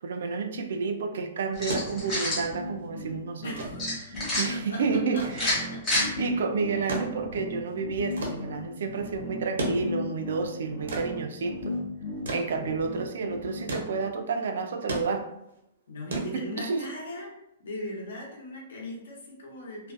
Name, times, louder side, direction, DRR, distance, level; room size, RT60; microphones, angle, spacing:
voice 1, 0.0-3.7 4.0-5.5 6.2-11.8 12.3-15.3 16.1-16.9, right 5 dB, 60° right, 6 dB, 0.3 m, -30 dB
sound 1, 1.5-2.4 3.8-4.4 5.3-6.0, left 1 dB, 15° left, 0.8 m, -27 dB
sound 2, 1.6-14.1, left 2 dB, 30° left, 0.4 m, -37 dB
sound 3, 1.7-17.0 18.2-18.3, right 1 dB, 90° right, 0.7 m, -38 dB
voice 2, 3.4-3.9 4.5-4.8 5.1-5.8 15.9-17.3 17.6-19.9, left 1 dB, 70° left, -2 dB, 0.8 m, -38 dB
2.4 x 2.2 x 2.5 m, 0.84 s
hypercardioid pair, 180°, 0 cm